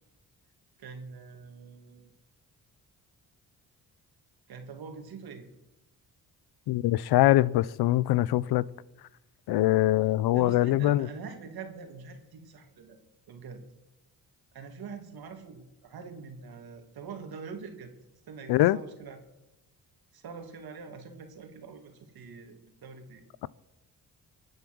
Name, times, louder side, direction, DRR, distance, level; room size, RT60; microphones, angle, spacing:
voice 1, 0.8-2.1 4.5-5.5 10.3-13.0 13.3-13.6 14.5-17.9 18.3-19.2 20.1-23.2, right 5 dB, 75° right, 2.4 m, -44 dB
voice 2, 6.7-8.7 9.5-11.1 18.5-18.8, left 15 dB, 85° left, 0.6 m, -23 dB
23.0 x 8.1 x 6.2 m
cardioid pair, 65°, 37 cm